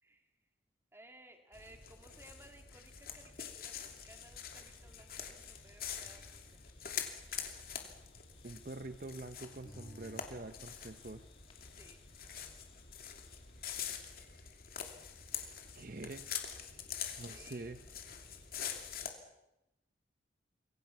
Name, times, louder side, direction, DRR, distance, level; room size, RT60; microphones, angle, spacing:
voice 1, 0.9-6.7 11.8-12.0 17.2-17.8, right 1 dB, 15° right, 4 dB, 2.8 m, -59 dB
sound 1, 1.5-19.1, left 8 dB, 50° left, 2.8 m, -45 dB
sound 2, 4.3-9.4 9.6-13.9, left 1 dB, 30° left, 2.9 m, -60 dB
voice 2, 8.4-11.3 15.7-16.4 17.2-17.8, right 2 dB, 45° right, 9 dB, 0.8 m, -46 dB
27.0 x 23.5 x 6.0 m, 0.89 s
head